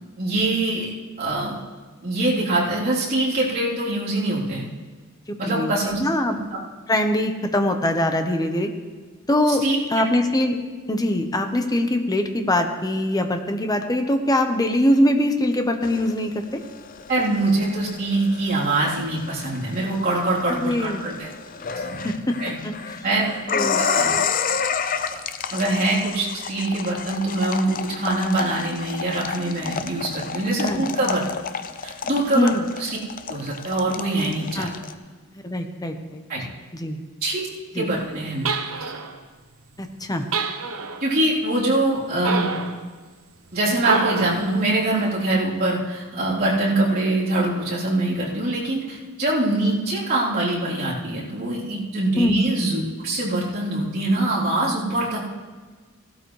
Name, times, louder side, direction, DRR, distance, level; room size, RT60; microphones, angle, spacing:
voice 1, 0.2-0.9 1.2-1.6 2.0-4.7 5.4-6.0 6.3-6.4 9.5-9.8 17.1-21.3 21.7-22.1 22.4-22.6 23.0-23.2 23.8-24.1 25.1-25.2 25.5-31.2 31.8-32.9 33.3-34.7 36.3-36.4 37.2-37.5 37.7-38.5 41.0-42.5 43.5-55.2, right 2 dB, 45° right, -8 dB, 3.6 m, -23 dB
voice 2, 5.3-6.4 6.9-8.7 9.3-9.6 9.9-10.5 10.9-16.6 20.5-21.0 22.0-23.0 23.5-23.8 30.6-30.9 32.3-32.6 34.6-34.7 35.4-36.2 36.7-37.0 37.7-37.9 39.8-40.2 52.2-52.4, left 1 dB, 20° left, 5 dB, 1.0 m, -23 dB
sound 1, 15.8-34.9, left 6 dB, 40° left, 0.6 m, -30 dB
sound 2, 38.5-39.2 40.3-41.1 42.2-42.8 43.8-44.5, right 4 dB, 75° right, 0.9 m, -27 dB
17.5 x 12.5 x 3.3 m, 1.4 s
head